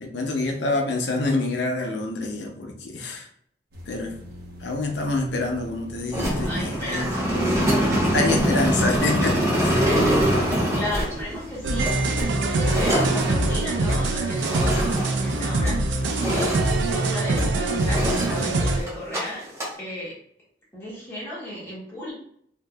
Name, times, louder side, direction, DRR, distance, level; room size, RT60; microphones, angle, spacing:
voice 1, 0.0-3.3 3.9-4.1 4.6-7.5 8.1-9.8, left 2 dB, 65° left, 2 dB, 0.6 m, -27 dB
sound 1, 3.7-18.7, left 1 dB, 55° right, 0.8 m, -43 dB
sound 2, 6.1-15.8 16.0-17.5 17.8-19.2 19.4-19.7, equal, 15° right, 0.9 m, -24 dB
voice 2, 6.4-7.7 9.7-15.8 16.3-19.4 19.8-20.1 20.7-22.1, equal, 15° left, -8 dB, 1.4 m, -34 dB
sound 3, 11.6-18.8, right 2 dB, 75° right, 0.4 m, -24 dB
3.6 x 2.7 x 2.3 m, 0.65 s
head